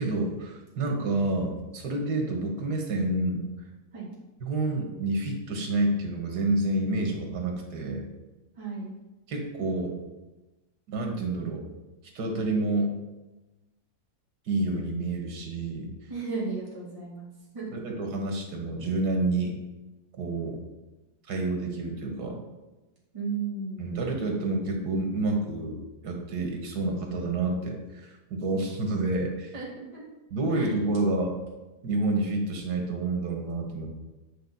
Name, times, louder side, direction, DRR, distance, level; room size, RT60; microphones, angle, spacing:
voice 1, 0.0-3.4 4.4-8.1 9.3-10.0 10.9-11.6 12.2-12.9 14.5-15.9 17.7-19.6 20.2-20.6 21.3-22.4 23.8-29.5 30.3-31.4 31.8-33.9, right 2 dB, 90° right, 2 dB, 1.9 m, -29 dB
voice 2, 8.6-8.9 16.1-17.3 17.5-17.7 23.1-24.2 29.5-29.7 29.9-30.1 30.5-30.7, right 4 dB, 20° right, -7 dB, 2.2 m, -34 dB
8.9 x 5.1 x 4.0 m, 1.1 s
omnidirectional pair, 1.7 m